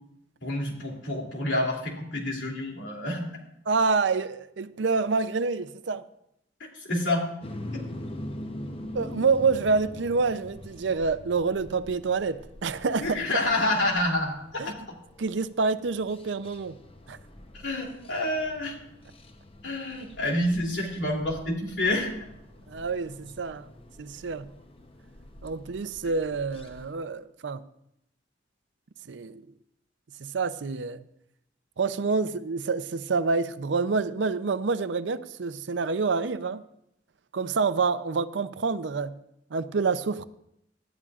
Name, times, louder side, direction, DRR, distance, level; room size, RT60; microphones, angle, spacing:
voice 1, 0.4-3.3 6.9-7.3 7.7-7.8 13.0-14.4 14.6-14.7 17.6-18.7 19.6-22.1, left 1 dB, 85° left, 2.8 m, -28 dB
voice 2, 3.7-6.1 8.9-13.2 14.6-14.7 15.2-16.8 17.1-17.2 22.7-23.7 24.0-24.5 25.4-27.6 29.1-29.4 30.2-31.0 31.8-36.6 37.3-39.1 39.5-40.2, right 4 dB, 75° right, 0.5 m, -27 dB
sound 1, 7.4-26.9, left 1 dB, 30° left, 0.8 m, -44 dB
18.5 x 12.0 x 2.4 m
head